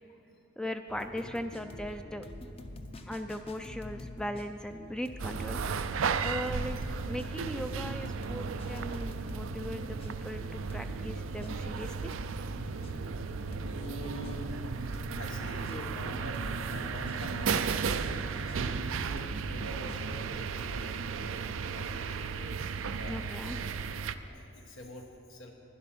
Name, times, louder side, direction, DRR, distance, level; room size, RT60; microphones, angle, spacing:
voice 1, 0.6-2.2 3.0-5.6 6.2-6.8 7.1-12.1 18.8-18.9 23.1-23.6, equal, 5° left, 7 dB, 0.4 m, -38 dB
sound 1, 0.9-20.8, left 1 dB, 30° left, 0.7 m, -47 dB
sound 2, 5.2-24.2, right 5 dB, 90° right, 0.5 m, -35 dB
sound 3, 12.2-20.2, left 1 dB, 45° left, 1.1 m, -51 dB
voice 2, 13.1-18.9 19.4-21.0 21.4-22.5 22.9-25.5, left 1 dB, 80° left, 1 dB, 1.3 m, -46 dB
11.5 x 10.5 x 6.0 m, 2.8 s
head